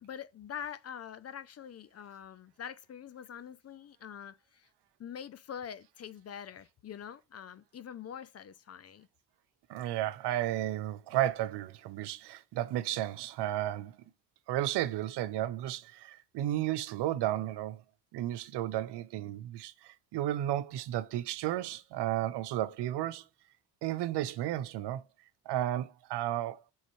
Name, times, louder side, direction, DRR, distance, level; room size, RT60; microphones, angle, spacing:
voice 1, 0.0-4.7 5.0-9.1, left 8 dB, 40° left, 0.5 m, -44 dB
voice 2, 9.7-14.0 14.5-17.8 18.1-23.3 23.8-25.0 25.5-26.6, right 13 dB, 90° right, 0.6 m, -33 dB
5.5 x 3.1 x 3.0 m
cardioid pair, 70°, 40 cm